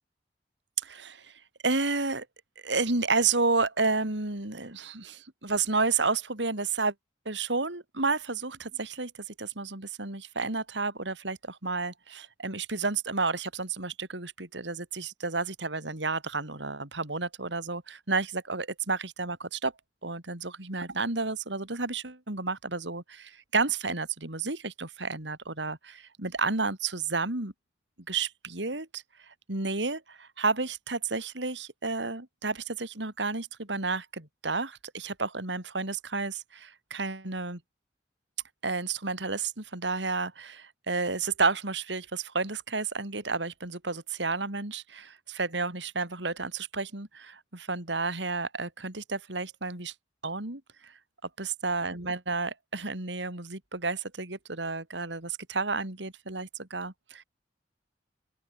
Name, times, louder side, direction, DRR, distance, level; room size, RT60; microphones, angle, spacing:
voice 1, 0.8-1.3 1.6-2.3 2.6-6.9 7.3-19.7 20.0-27.5 28.1-29.0 29.5-37.6 38.6-49.9 50.2-50.9 51.4-57.2, right 3 dB, 75° right, 3.6 m, -31 dB
open air
head